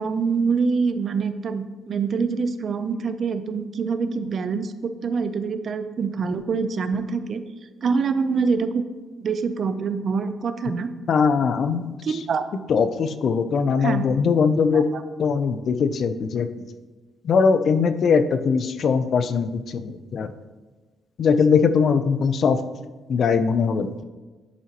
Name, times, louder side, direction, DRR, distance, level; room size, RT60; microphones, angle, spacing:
voice 1, 0.0-7.4 7.8-8.8 9.2-10.9 12.0-12.5 13.8-14.0 14.7-14.8, right 5 dB, 50° right, 10 dB, 0.6 m, -25 dB
voice 2, 11.1-12.2 12.7-14.9 15.2-16.5 17.2-20.3 21.2-22.6 23.1-23.9, left 5 dB, 60° left, 11 dB, 0.5 m, -21 dB
11.0 x 5.7 x 3.0 m, 1.3 s
cardioid pair, 90°, 0 cm